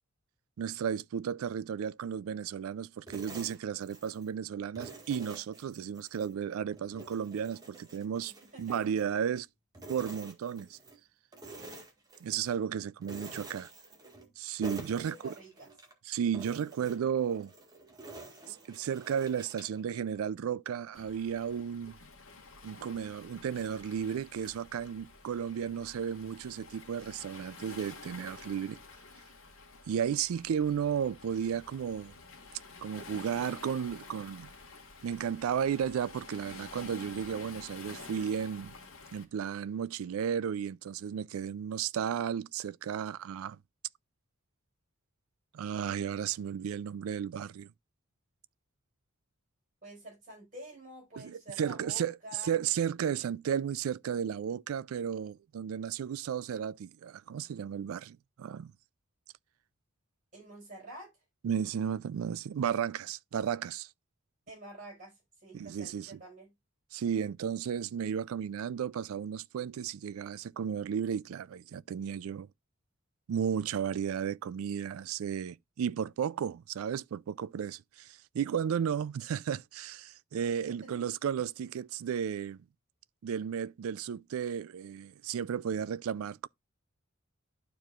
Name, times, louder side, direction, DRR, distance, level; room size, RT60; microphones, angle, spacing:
voice 1, 0.6-8.3 8.6-9.5 9.9-10.8 12.2-13.7 14.4-15.3 16.1-17.5 18.5-22.0 22.6-28.8 29.9-32.1 32.8-34.5 35.0-38.7 39.1-43.6 45.5-47.7 51.2-52.2 52.4-58.7 61.4-63.9 65.5-66.1 66.9-72.5 73.3-82.6 83.2-86.5, right 8 dB, 80° right, 0.3 m, -34 dB
sound 1, 3.1-4.3 4.8-6.3 6.7-9.4 9.7-11.0 11.3-12.6 13.0-14.3 14.6-15.9 16.3-19.8, right 2 dB, 20° right, 1.7 m, -48 dB
voice 2, 8.5-8.9 14.9-15.7 49.8-52.5 60.3-61.1 64.5-66.5 80.7-81.0, right 1 dB, 40° right, 5.2 m, -48 dB
Waves surf, 20.9-39.2, left 4 dB, 75° left, 1.9 m, -50 dB
12.0 x 4.6 x 2.4 m
head